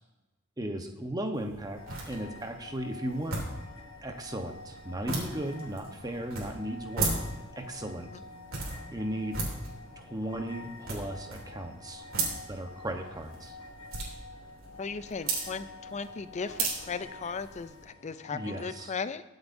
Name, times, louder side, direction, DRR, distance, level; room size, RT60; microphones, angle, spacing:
voice 1, 0.6-1.8 2.1-3.4 4.0-7.1 7.6-8.1 8.9-9.4 10.0-12.0 12.5-13.6 18.3-18.9, right 1 dB, 20° right, 5 dB, 1.0 m, -36 dB
sound 1, 1.3-17.8, right 3 dB, 70° right, 3.1 m, -38 dB
sound 2, 1.7-18.7, left 2 dB, 65° left, 1.8 m, -48 dB
voice 2, 14.8-19.2, left 5 dB, 35° left, 13 dB, 0.4 m, -37 dB
21.0 x 8.0 x 2.7 m, 1.1 s
head